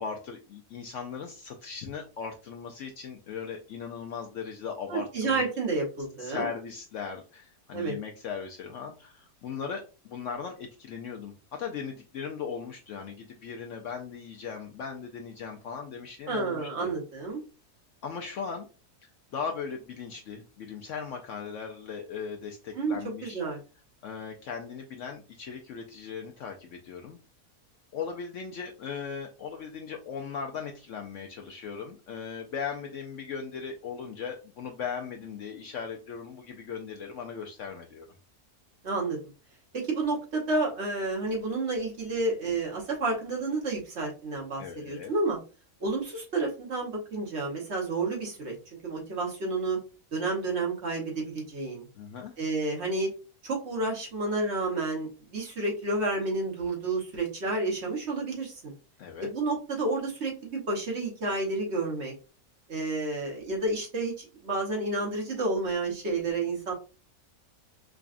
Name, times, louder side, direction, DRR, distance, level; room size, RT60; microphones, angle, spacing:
voice 1, 0.0-5.4 6.2-16.9 18.0-18.7 19.0-23.4 24.0-27.2 27.9-38.1 44.6-45.1 52.0-52.3 59.0-59.3, left 6 dB, 65° left, 3 dB, 0.8 m, -38 dB
voice 2, 4.9-6.5 7.7-7.9 16.3-17.4 22.7-23.6 38.8-39.2 39.7-45.4 45.8-49.8 50.1-51.9 52.4-53.1 53.4-58.7 59.2-62.1 62.7-66.7, right 3 dB, 50° right, -1 dB, 1.2 m, -30 dB
4.8 x 2.3 x 2.4 m, 0.32 s
omnidirectional pair, 1.6 m